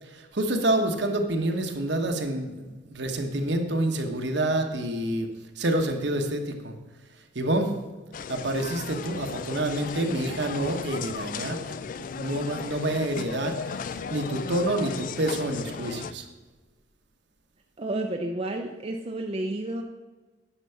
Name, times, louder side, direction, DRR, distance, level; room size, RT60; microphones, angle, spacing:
voice 1, 0.0-5.3 5.5-6.7 7.1-7.8 8.3-11.6 12.0-16.3, right 1 dB, 65° right, 4 dB, 1.1 m, -28 dB
sound 1, 8.1-16.1, left 6 dB, 45° left, 0.3 m, -36 dB
voice 2, 17.8-19.8, right 1 dB, 30° right, 3 dB, 0.6 m, -31 dB
10.0 x 6.0 x 5.7 m, 1.2 s
head